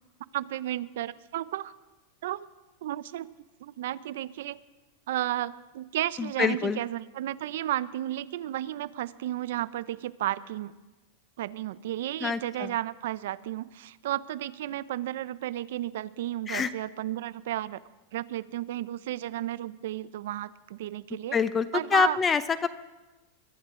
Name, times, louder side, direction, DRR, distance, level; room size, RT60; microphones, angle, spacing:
voice 1, 0.3-1.7 2.2-2.5 2.8-3.3 3.6-4.6 5.1-10.7 11.4-17.8 18.1-21.4 21.7-22.2, right 13 dB, 75° right, 17 dB, 0.6 m, -33 dB
voice 2, 6.2-6.8 12.2-12.7 16.5-16.7 21.3-22.7, left 6 dB, 20° left, 14 dB, 0.5 m, -26 dB
22.5 x 12.0 x 3.8 m, 1.1 s
supercardioid pair, 135°, 0 cm